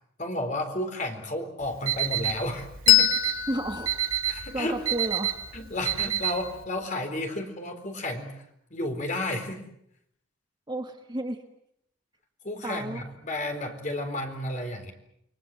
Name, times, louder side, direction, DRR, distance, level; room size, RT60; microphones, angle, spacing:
voice 1, 0.2-3.3 4.3-4.8 5.5-8.3 8.7-9.6 12.4-14.9, left 1 dB, 35° left, 4 dB, 4.1 m, -32 dB
Alarm, 1.6-6.6, right 11 dB, 80° right, 3.4 m, -29 dB
Bell, 2.9-5.9, left 17 dB, 70° left, 1.0 m, -26 dB
voice 2, 3.5-3.9 4.5-5.4 10.7-11.4 12.6-13.0, right 1 dB, 20° right, 5 dB, 1.6 m, -32 dB
29.5 x 22.5 x 7.6 m, 0.74 s
head